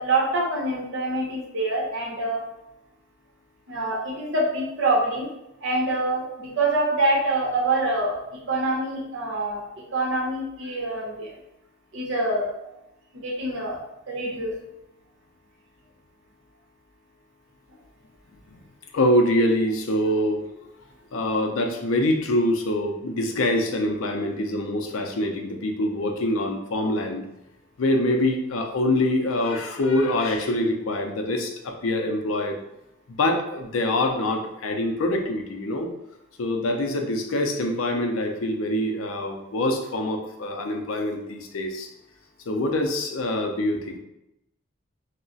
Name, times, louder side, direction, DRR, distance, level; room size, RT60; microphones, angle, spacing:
voice 1, 0.0-2.4 3.7-5.3 5.6-9.6 9.9-11.3 11.9-12.8 13.1-13.8 14.1-14.5, right 2 dB, 65° right, -3 dB, 0.9 m, -25 dB
voice 2, 18.9-20.5 21.1-27.2 27.8-32.6 33.1-35.9 36.4-41.9 42.5-44.0, left 1 dB, 90° left, 4 dB, 0.5 m, -25 dB
2.3 x 2.1 x 3.8 m, 0.85 s
head